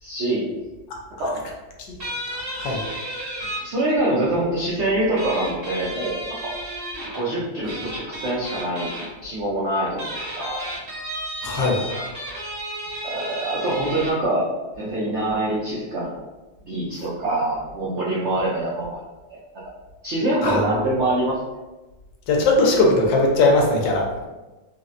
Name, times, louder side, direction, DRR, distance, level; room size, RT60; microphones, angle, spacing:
voice 1, 0.0-0.4 1.2-1.4 3.6-6.5 7.1-9.0 9.2-10.6 11.5-12.1 13.0-14.5 14.8-16.1 16.7-19.0 20.0-21.4, right 1 dB, 90° right, -6 dB, 0.6 m, -25 dB
sound 1, 2.0-3.6 5.2-7.2 7.7-9.1 9.9-14.1, right 1 dB, 45° right, 0.8 m, -32 dB
voice 2, 2.3-2.9 11.4-11.8 20.4-20.8 22.3-24.3, left 2 dB, 85° left, 0 dB, 1.3 m, -20 dB
4.0 x 2.1 x 2.5 m, 1.1 s
omnidirectional pair, 1.9 m